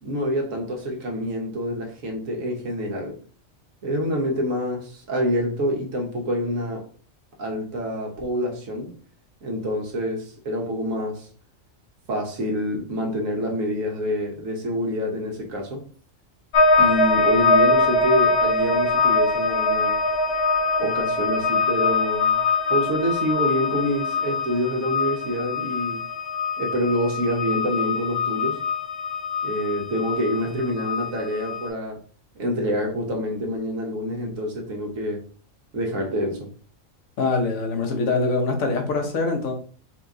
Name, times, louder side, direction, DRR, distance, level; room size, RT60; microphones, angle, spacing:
voice 1, 0.0-3.2 3.8-6.9 7.4-8.9 9.4-11.3 12.1-15.8 16.8-20.0 20.8-22.4 22.7-26.0 26.6-28.6 29.4-32.0 32.3-35.2 35.7-36.5, equal, 75° right, 1.5 m, -27 dB
sound 1, 16.5-31.7, left 3 dB, 55° left, 1.2 m, -23 dB
voice 2, 37.2-39.5, left 3 dB, 85° left, 1.4 m, -23 dB
4.4 x 2.8 x 3.7 m
omnidirectional pair, 1.4 m